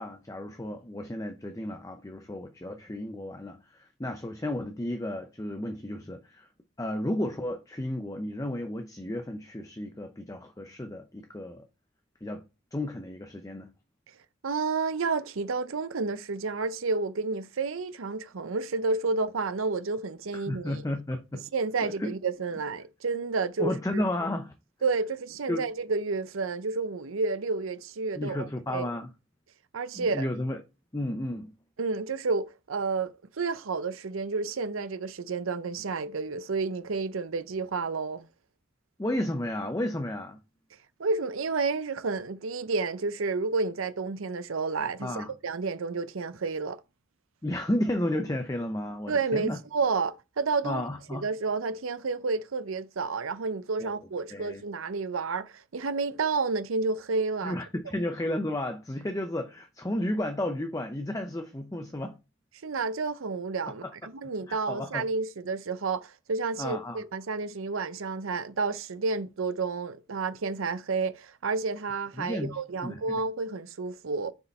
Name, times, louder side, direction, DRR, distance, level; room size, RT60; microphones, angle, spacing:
voice 1, 0.0-6.5 6.8-11.7 12.2-12.4 12.7-13.7 20.3-21.4 21.8-22.1 23.6-24.5 25.5-25.6 28.2-29.1 29.9-30.6 30.9-31.5 39.0-40.4 45.0-45.3 47.4-49.6 50.6-51.3 53.8-53.9 54.3-54.6 57.4-62.2 63.8-63.9 64.5-65.1 66.6-67.0 72.2-73.2, left 1 dB, 15° left, 0.6 m, -33 dB
voice 2, 14.4-20.8 21.5-24.0 24.8-28.9 29.7-30.3 31.8-38.3 41.0-46.8 49.1-50.8 51.1-57.6 62.6-74.3, right 4 dB, 85° right, 0.7 m, -30 dB
6.5 x 4.9 x 4.2 m
head